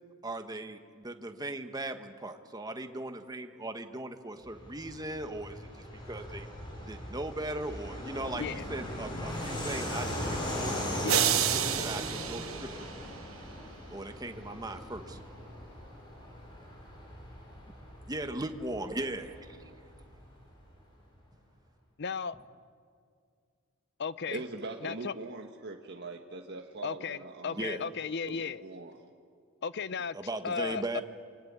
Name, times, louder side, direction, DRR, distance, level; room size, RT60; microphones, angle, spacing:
voice 1, 0.2-6.5 6.8-11.3 11.7-13.1 13.9-15.2 18.1-19.7 27.6-27.8 30.1-31.0, right 2 dB, 20° right, 7 dB, 1.4 m, -38 dB
Fixed-wing aircraft airplane, 4.4-20.6, left 1 dB, 25° left, 6.6 m, -39 dB
voice 2, 11.0-11.4 22.0-22.4 24.0-24.4 24.8-25.1 26.8-28.6 29.6-30.2 30.4-31.0, left 5 dB, 55° left, 16 dB, 0.7 m, -35 dB
sound 1, 11.1-13.4, right 11 dB, 85° right, 1.1 m, -30 dB
voice 3, 24.3-27.8 28.3-29.0, right 3 dB, 55° right, 2 dB, 1.6 m, -42 dB
27.5 x 24.0 x 8.9 m, 2.2 s
head